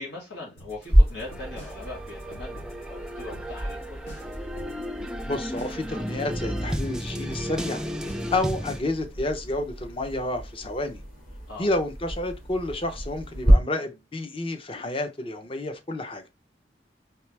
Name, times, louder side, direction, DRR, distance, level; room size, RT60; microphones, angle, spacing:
voice 1, 0.0-4.0 11.5-11.7, left 2 dB, 85° left, 2.2 m, -40 dB
sound 1, 0.6-8.5, equal, 70° left, 2.3 m, -47 dB
sound 2, 0.9-13.5, equal, 50° left, 2.2 m, -29 dB
sound 3, 1.3-8.8, equal, 5° right, 0.3 m, -34 dB
voice 2, 5.2-7.8 8.3-11.0 11.6-16.2, left 2 dB, 30° left, 0.6 m, -30 dB
4.6 x 3.3 x 3.2 m
head